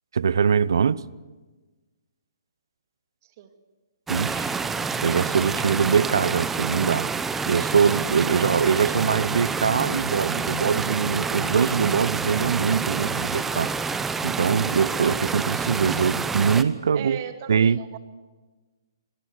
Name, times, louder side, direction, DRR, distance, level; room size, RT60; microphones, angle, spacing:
voice 1, 0.1-1.0 4.1-4.5 5.0-7.1 7.5-17.2 17.5-17.8, right 6 dB, 65° right, 0.7 m, -23 dB
voice 2, 3.2-3.5 13.1-13.3 16.9-18.0, right 9 dB, 45° right, 2.4 m, -38 dB
sound 1, 4.1-16.6, right 5 dB, 10° right, 0.9 m, -28 dB
25.5 x 20.0 x 8.0 m
figure-of-eight pair, 135°, 2 cm